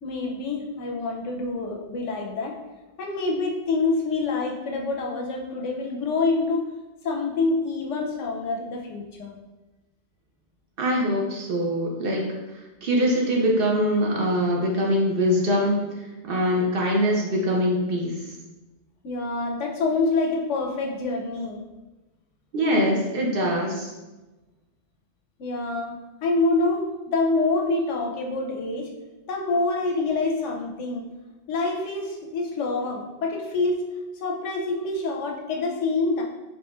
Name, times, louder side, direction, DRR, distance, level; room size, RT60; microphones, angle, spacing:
voice 1, 0.0-2.6 3.0-6.7 7.0-9.4 19.0-21.6 25.4-28.9 29.3-31.0 31.5-33.8 34.2-36.2, left 3 dB, 85° left, 1 dB, 0.9 m, -26 dB
voice 2, 10.8-12.2 12.5-15.8 16.2-18.1 22.5-23.9, equal, 55° right, -1 dB, 0.8 m, -23 dB
4.2 x 3.1 x 2.3 m, 1.1 s
omnidirectional pair, 1.2 m